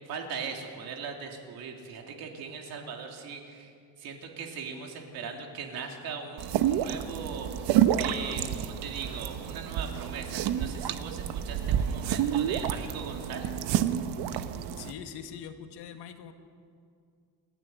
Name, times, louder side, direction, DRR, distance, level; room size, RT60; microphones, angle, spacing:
voice 1, 0.1-3.7 4.0-13.6, right 5 dB, 65° right, 2 dB, 3.2 m, -39 dB
sound 1, 6.4-14.9, right 10 dB, 85° right, 1.1 m, -29 dB
voice 2, 14.8-16.3, left 8 dB, 90° left, 6 dB, 2.0 m, -42 dB
28.5 x 11.5 x 9.4 m, 2.3 s
cardioid pair, 170°, 38 cm